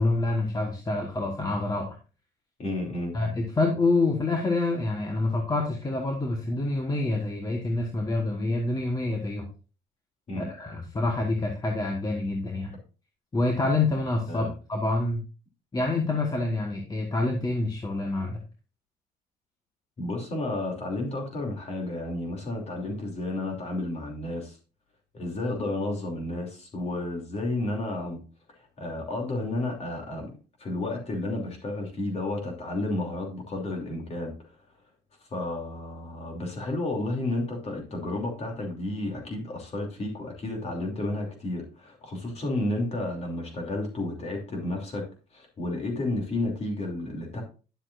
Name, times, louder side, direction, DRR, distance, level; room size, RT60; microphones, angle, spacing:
voice 1, 0.0-2.0 3.1-9.5 10.4-12.8 13.3-15.2 15.7-18.4, left 2 dB, 20° left, 2 dB, 1.3 m, -27 dB
voice 2, 2.6-3.1 10.3-10.5 14.3-14.5 20.0-24.6 25.1-28.2 28.8-30.3 30.6-34.3 35.3-45.0 45.3-47.4, left 2 dB, 40° left, 1 dB, 2.9 m, -31 dB
10.5 x 7.1 x 2.5 m, 0.34 s
cardioid pair, 110°, 17 cm